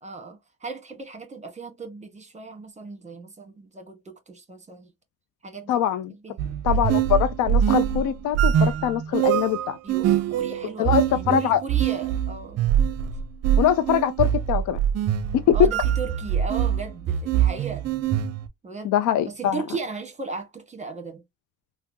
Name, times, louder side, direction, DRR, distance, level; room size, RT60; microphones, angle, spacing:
voice 1, 0.0-4.9 5.4-5.8 6.2-6.9 9.8-12.6 15.5-17.9 18.6-18.9 19.2-21.2, right 4 dB, 25° right, 1.2 m, -36 dB
voice 2, 5.7-6.1 6.6-9.8 10.8-11.6 13.6-14.8 15.3-15.6 18.8-19.6, left 10 dB, 80° left, 0.5 m, -23 dB
sound 1, 6.4-18.5, right 9 dB, 55° right, 0.5 m, -23 dB
3.5 x 2.0 x 2.7 m
cardioid pair, 90°, 30 cm